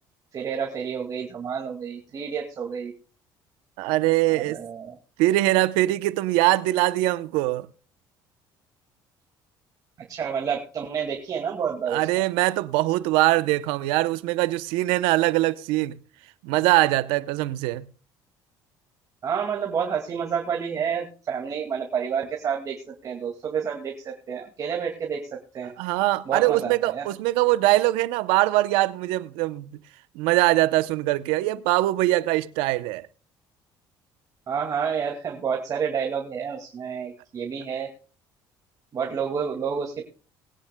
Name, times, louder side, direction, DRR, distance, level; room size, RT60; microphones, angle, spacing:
voice 1, 0.3-2.9 4.3-5.0 10.0-12.1 19.2-25.3 25.5-25.7 26.3-27.1 34.5-37.9 38.9-40.1, right 7 dB, 40° right, 2.2 m, -29 dB
voice 2, 3.8-4.6 5.2-7.7 11.9-16.0 16.4-17.9 25.8-29.7 30.1-33.0, right 17 dB, 90° right, 0.7 m, -22 dB
20.5 x 10.0 x 2.3 m
cardioid pair, 105°, 9 cm